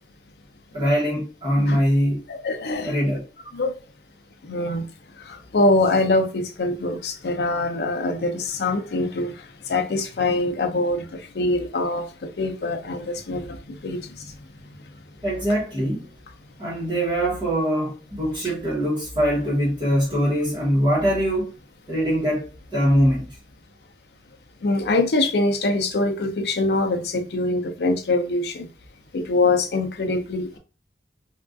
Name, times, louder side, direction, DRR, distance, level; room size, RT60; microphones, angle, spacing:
voice 1, 0.7-2.2 2.8-3.2 15.2-16.1 16.6-21.5 21.9-22.5 22.7-23.4, equal, 25° right, 0.9 m, -22 dB
voice 2, 2.3-2.9 3.5-3.8 4.4-4.9 5.2-14.3 24.6-28.7 29.1-30.6, left 2 dB, 70° left, 0.5 m, -24 dB
3.6 x 2.3 x 2.4 m
head